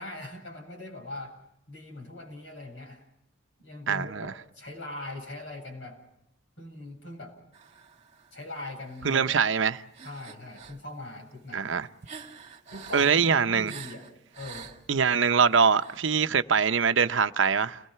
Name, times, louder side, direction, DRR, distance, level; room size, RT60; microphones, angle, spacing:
voice 1, 0.0-1.3 1.7-3.0 3.6-4.3 4.5-6.0 6.6-7.4 8.3-9.2 10.0-11.8 12.7-14.1 14.4-14.7, left 2 dB, 70° left, 7.8 m, -41 dB
voice 2, 3.9-4.3 9.0-9.8 11.5-11.9 12.9-13.7 14.9-17.8, right 6 dB, 75° right, 0.8 m, -23 dB
sound 1, 7.5-8.4 8.9-9.2 9.9-10.8 11.3-15.1 15.7-16.0, right 6 dB, 35° right, 2.3 m, -46 dB
30.0 x 20.5 x 5.7 m
head